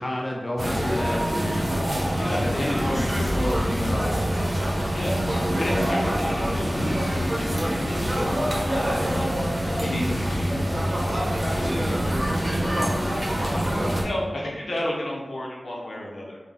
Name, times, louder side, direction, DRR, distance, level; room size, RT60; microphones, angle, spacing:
voice 1, 0.0-1.8 2.4-4.1 4.5-5.0, left 1 dB, 35° left, -1 dB, 0.4 m, -31 dB
sound 1, 0.6-14.0, equal, 30° right, 0.9 m, -25 dB
voice 2, 2.1-3.1 4.9-5.2 5.6-9.2 9.7-12.2 12.6-13.7 14.0-16.4, left 1 dB, 80° left, -3 dB, 0.7 m, -34 dB
3.6 x 2.2 x 3.5 m, 1.2 s
wide cardioid pair, 80°, 0 cm